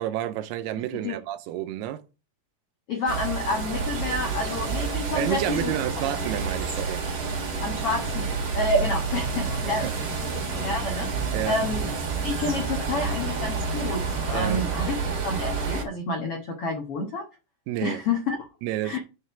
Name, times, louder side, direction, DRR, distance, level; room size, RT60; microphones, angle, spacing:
voice 1, 0.0-2.0 5.2-7.0 9.8-9.9 11.3-11.6 14.3-14.6 17.7-18.0 18.6-19.0, right 13 dB, 85° right, 2.7 m, -30 dB
voice 2, 2.9-5.7 7.6-9.9 10.3-11.9 12.2-17.3 17.8-18.5 18.8-19.0, left 2 dB, 80° left, 1.3 m, -29 dB
sound 1, 3.1-15.8, right 4 dB, 40° right, 2.1 m, -29 dB
6.5 x 4.8 x 6.8 m
omnidirectional pair, 4.7 m